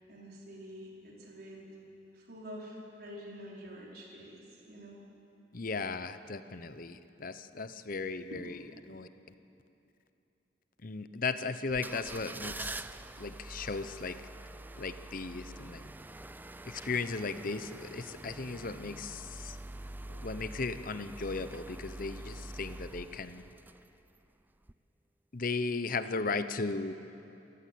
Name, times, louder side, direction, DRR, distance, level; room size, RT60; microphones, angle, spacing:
voice 1, 0.1-1.6 2.1-5.0 8.3-8.4, equal, 60° right, -3 dB, 4.8 m, -47 dB
voice 2, 5.5-8.6 8.9-9.1 10.8-12.8 13.2-14.2 14.8-15.8 16.7-19.6 20.1-23.4 25.3-26.9, left 4 dB, 50° left, 12 dB, 0.9 m, -36 dB
sound 1, 11.7-24.2 24.6-24.7, right 2 dB, 10° right, 0.4 m, -45 dB
28.0 x 15.5 x 8.6 m, 2.9 s
head